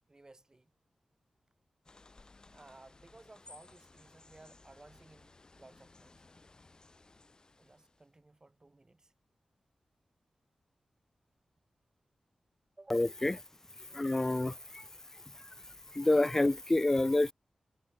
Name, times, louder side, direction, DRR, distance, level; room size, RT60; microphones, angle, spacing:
voice 1, 0.1-0.7 2.5-6.2 7.6-9.1 12.8-13.1, right 2 dB, 30° right, 4.6 m, -58 dB
sound 1, 1.8-8.1, left 3 dB, 40° left, 1.3 m, -59 dB
voice 2, 12.9-13.4 13.9-14.8 15.9-17.3, left 2 dB, 20° left, 0.3 m, -28 dB
cardioid pair, 60°, 2 cm